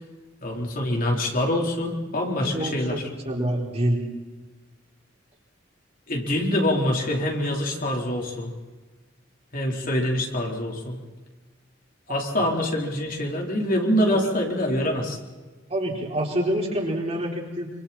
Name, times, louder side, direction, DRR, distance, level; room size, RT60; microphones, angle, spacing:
voice 1, 0.4-3.0 6.1-8.5 9.5-11.0 12.1-15.2, left 1 dB, 50° left, -1 dB, 4.2 m, -25 dB
voice 2, 2.4-3.0 3.2-4.0 14.1-14.3 15.7-17.7, right 1 dB, 35° right, -1 dB, 4.6 m, -26 dB
27.0 x 26.5 x 4.4 m, 1.3 s
head